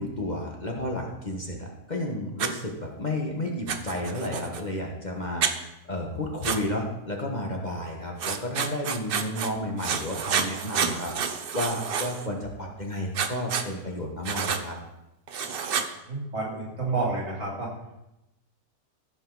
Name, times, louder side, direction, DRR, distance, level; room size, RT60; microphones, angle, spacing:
voice 1, 0.0-14.7, left 1 dB, 30° left, 0 dB, 1.2 m, -32 dB
Writing, 2.4-2.5 3.7-4.6 5.4-5.5 6.4-6.6 8.2-9.5 9.8-12.3 13.1-13.7 14.2-14.6 15.3-15.9, right 6 dB, 70° right, 0.5 m, -29 dB
voice 2, 16.0-17.7, right 3 dB, 90° right, -5 dB, 3.3 m, -30 dB
16.0 x 5.4 x 3.9 m, 0.91 s
omnidirectional pair, 1.8 m